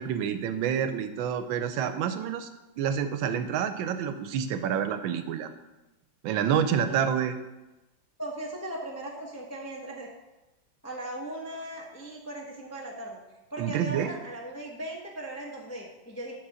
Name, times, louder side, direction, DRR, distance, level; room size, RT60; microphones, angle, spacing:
voice 1, 0.0-2.5 2.8-5.5 6.2-7.4 13.6-14.1, right 8 dB, 90° right, 10 dB, 1.4 m, -28 dB
voice 2, 6.8-7.1 8.2-10.1 10.8-13.2 13.5-16.3, right 1 dB, 15° left, -1 dB, 0.6 m, -38 dB
8.7 x 4.2 x 6.3 m, 1.0 s
omnidirectional pair, 2.1 m